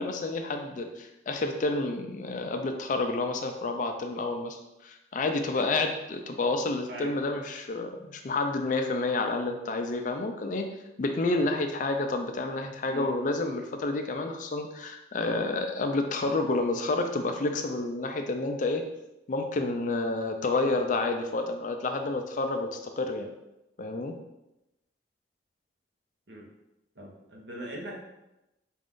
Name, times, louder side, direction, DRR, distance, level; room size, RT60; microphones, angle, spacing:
voice 1, 0.0-10.7 11.0-18.8 19.3-23.3 23.8-24.2, left 2 dB, 45° left, 5 dB, 0.4 m, -29 dB
voice 2, 27.0-28.1, right 1 dB, 70° right, -2 dB, 1.0 m, -40 dB
4.3 x 2.5 x 3.6 m, 0.93 s
head